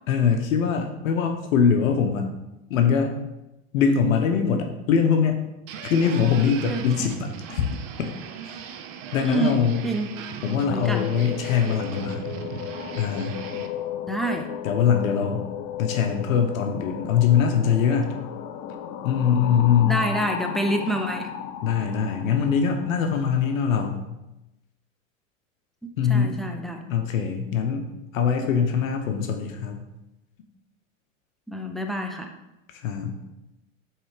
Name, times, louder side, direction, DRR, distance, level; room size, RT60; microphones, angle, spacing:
voice 1, 0.1-2.3 2.7-3.1 3.7-5.4 5.8-7.7 8.0-8.1 8.4-8.6 9.1-9.8 10.4-12.2 13.0-13.4 14.6-15.5 15.8-18.1 19.0-20.0 21.6-24.1 26.0-26.4 26.9-27.9 28.1-29.8 32.8-33.2, left 7 dB, 80° left, 4 dB, 0.9 m, -22 dB
sound 1, 5.7-13.7, right 7 dB, 50° right, 0.8 m, -38 dB
voice 2, 6.7-7.2 9.2-9.6 9.8-10.1 10.7-11.1 14.0-14.5 19.8-21.3 25.8-26.8 31.5-32.3, right 1 dB, ahead, 3 dB, 0.5 m, -27 dB
sound 2, 10.7-23.9, left 10 dB, 45° left, 0.6 m, -35 dB
7.7 x 3.3 x 4.9 m, 0.95 s
hypercardioid pair, 120°, 40 cm